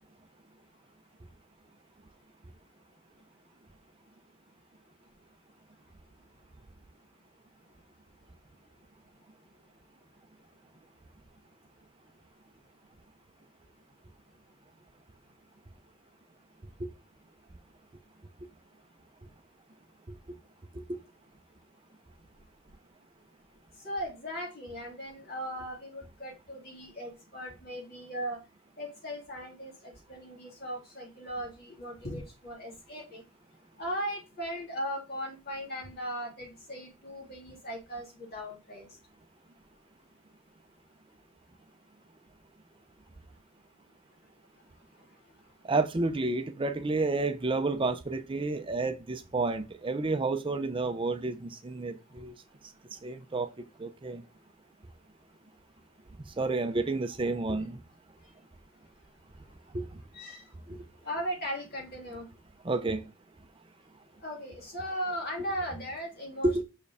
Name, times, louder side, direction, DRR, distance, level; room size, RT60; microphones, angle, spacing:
voice 1, 23.8-28.4 28.8-33.2 33.8-38.9 60.1-60.4 61.0-62.2 64.2-66.6, equal, 50° left, 3.0 m, -38 dB
voice 2, 45.6-52.3 53.0-53.5 53.8-54.2 56.4-57.8 59.7-59.9 60.7-60.8 62.6-63.1 66.4-66.6, right 3 dB, 25° right, 0.5 m, -30 dB
6.0 x 4.5 x 3.4 m
head